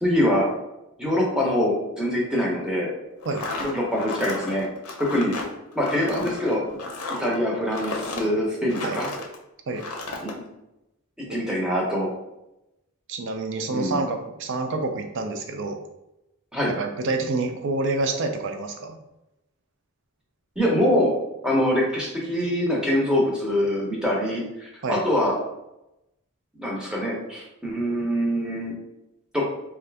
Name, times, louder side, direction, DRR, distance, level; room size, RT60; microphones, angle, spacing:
voice 1, 0.0-0.5 1.0-2.9 3.6-4.7 5.0-5.3 5.8-6.6 7.2-9.1 10.2-10.3 11.3-12.1 13.7-14.0 16.5-16.7 20.6-21.1 21.4-25.3 26.6-28.7 29.3-29.4, equal, 5° right, -4 dB, 0.7 m, -24 dB
sound 1, 3.2-9.4 9.7-10.3, left 3 dB, 75° left, 0.5 m, -33 dB
voice 2, 13.1-15.8 16.6-19.0 24.8-25.0, right 3 dB, 55° right, 5 dB, 0.4 m, -28 dB
2.6 x 2.4 x 3.3 m, 0.90 s
head